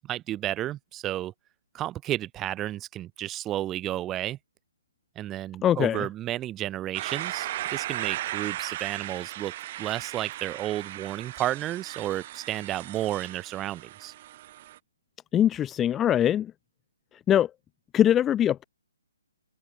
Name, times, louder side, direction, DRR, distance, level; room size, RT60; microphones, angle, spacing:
voice 1, 0.0-1.3 1.7-4.4 5.1-14.1, right 13 dB, 15° right, 1.7 m, -32 dB
voice 2, 5.6-6.1 15.3-16.5 17.3-17.5 17.9-18.6, left 10 dB, 15° left, 0.4 m, -22 dB
sound 1, 6.9-14.8, right 14 dB, 35° right, 1.2 m, -36 dB
figure-of-eight pair, 140°, 0 cm